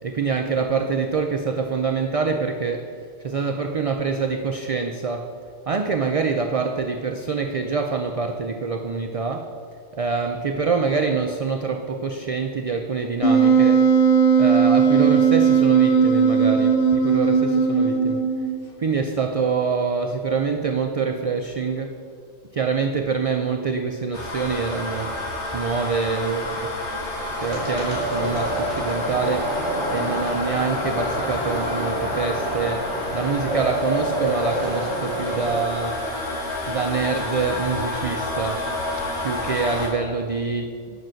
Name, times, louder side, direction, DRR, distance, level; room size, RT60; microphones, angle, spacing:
voice 1, 0.0-9.6 9.9-13.9 14.4-18.3 18.8-22.0 22.5-25.2 25.5-26.8 27.4-29.6 29.9-36.1 36.7-38.7 39.2-40.6, right 5 dB, 45° right, 6 dB, 0.4 m, -25 dB
Wind instrument woodwind instrument, 13.2-18.6, right 6 dB, 55° left, 0.9 m, -17 dB
sound 1, 24.1-39.9, left 2 dB, 75° left, 2.4 m, -29 dB
sound 2, 27.4-35.6, right 1 dB, 20° left, 3.1 m, -28 dB
9.4 x 6.0 x 7.5 m, 2.3 s
omnidirectional pair, 1.2 m